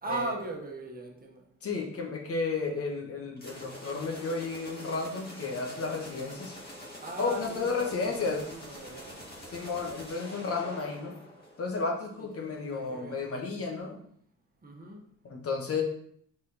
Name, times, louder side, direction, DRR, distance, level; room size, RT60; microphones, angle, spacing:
voice 1, 0.0-1.5 7.0-9.2 12.2-13.2 14.6-15.1, right 3 dB, 30° right, 0 dB, 1.3 m, -39 dB
voice 2, 1.6-6.5 7.2-8.4 9.5-11.2 11.6-14.0 15.2-15.8, left 4 dB, 50° left, 1 dB, 1.4 m, -32 dB
sound 1, 3.4-12.0, equal, 30° left, 2.2 m, -46 dB
5.2 x 4.5 x 4.1 m, 0.65 s
cardioid pair, 90°, 30 cm